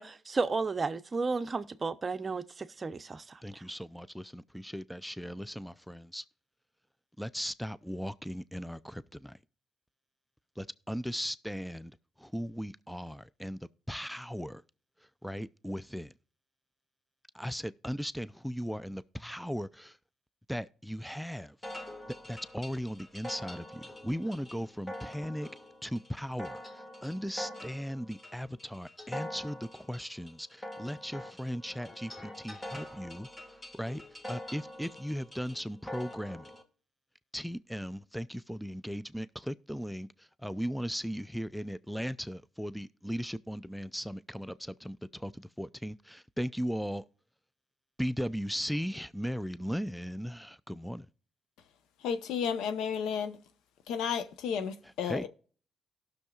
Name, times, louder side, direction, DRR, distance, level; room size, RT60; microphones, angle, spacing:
voice 1, 0.0-3.6, right 4 dB, 30° right, 0.7 m, -33 dB
voice 2, 3.4-6.2 7.2-9.4 10.6-14.6 15.2-16.1 17.3-20.0 20.5-21.6 22.1-25.5 25.8-34.0 34.3-36.5 37.3-47.0 48.0-51.1 55.0-55.3, equal, ahead, 0.4 m, -37 dB
sound 1, 21.6-36.6, left 1 dB, 25° left, 1.7 m, -45 dB
voice 3, 52.0-53.4 53.9-55.3, left 7 dB, 90° left, 0.9 m, -32 dB
18.0 x 6.4 x 2.4 m
cardioid pair, 90°, 0 cm